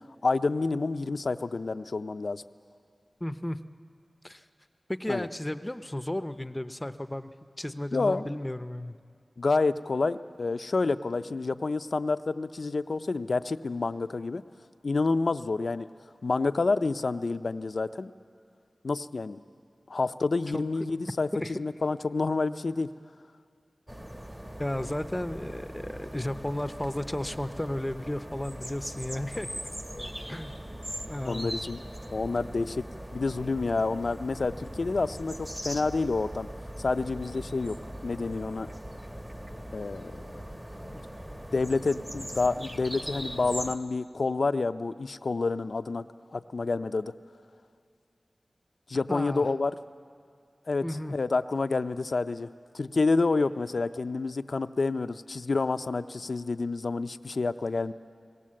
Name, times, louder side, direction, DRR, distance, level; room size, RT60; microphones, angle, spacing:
voice 1, 0.2-2.4 5.1-5.3 7.9-8.3 9.4-14.4 14.8-15.9 16.2-18.1 18.8-19.4 19.9-21.3 21.6-22.9 29.9-30.3 31.3-31.8 32.1-32.8 33.1-36.5 36.8-37.8 38.0-38.7 39.7-40.4 41.5-46.1 46.3-47.1 48.9-49.7 50.7-52.5 52.7-57.9, left 3 dB, 75° left, 11 dB, 0.4 m, -28 dB
voice 2, 3.2-3.6 4.2-4.5 4.9-7.3 7.6-9.0 20.5-20.6 21.3-21.5 24.6-29.5 30.3-30.6 31.1-31.5 49.1-49.4 50.8-51.1, left 1 dB, 20° left, 11 dB, 0.5 m, -33 dB
sound 1, 23.9-43.8, equal, 15° right, 1.0 m, -40 dB
18.5 x 18.5 x 7.5 m, 2.2 s
wide cardioid pair, 50°, 0 cm